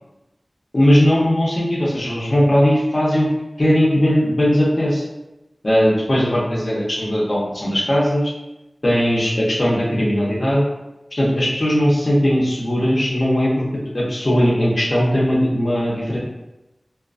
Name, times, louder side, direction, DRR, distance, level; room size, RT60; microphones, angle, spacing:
voice 1, 0.7-3.3 3.6-5.0 5.6-8.3 8.8-10.7 11.1-13.7 13.9-16.2, equal, 50° left, -6 dB, 0.7 m, -18 dB
2.3 x 2.2 x 2.4 m, 0.96 s
wide cardioid pair, 45°, 0 cm